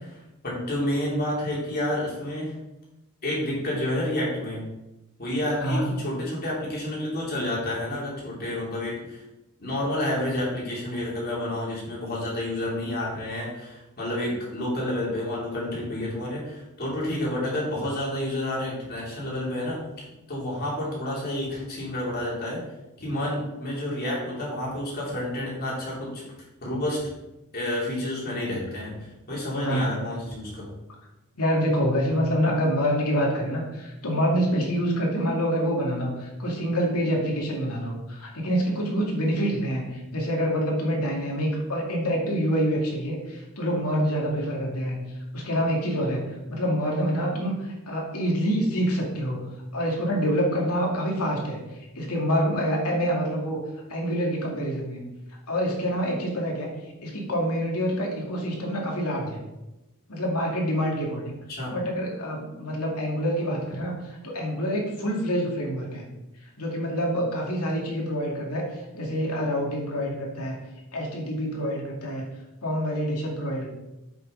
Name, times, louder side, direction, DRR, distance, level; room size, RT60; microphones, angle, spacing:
voice 1, 0.4-2.5 3.2-4.6 5.2-9.2 9.6-19.8 20.3-22.6 23.0-26.2 26.6-27.0 27.5-29.0 29.3-30.7 61.5-61.7, left 1 dB, 45° left, -6 dB, 3.4 m, -29 dB
voice 2, 5.6-5.9 29.6-29.9 31.4-45.0 45.3-46.2 46.5-49.5 49.7-53.6 53.9-55.0 55.5-56.7 57.0-59.4 60.1-61.3 61.7-66.1 66.6-70.6 70.9-72.3 72.6-73.7, equal, 85° left, -1 dB, 2.3 m, -26 dB
8.3 x 6.5 x 4.0 m, 0.97 s
head